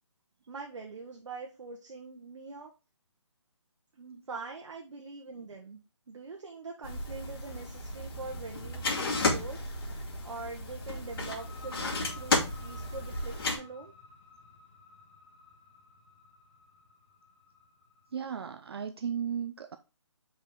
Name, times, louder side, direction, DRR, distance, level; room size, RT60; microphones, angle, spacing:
voice 1, 0.5-2.7 3.9-5.8 6.1-13.9, right 3 dB, 75° right, 1.3 m, -44 dB
sound 1, 6.8-13.6, left 2 dB, 50° left, 2.4 m, -33 dB
sound 2, 11.0-18.5, left 3 dB, 20° left, 1.6 m, -54 dB
voice 2, 18.1-19.8, right 7 dB, 55° right, 0.5 m, -35 dB
5.0 x 5.0 x 3.8 m
hypercardioid pair, 165°, 16 cm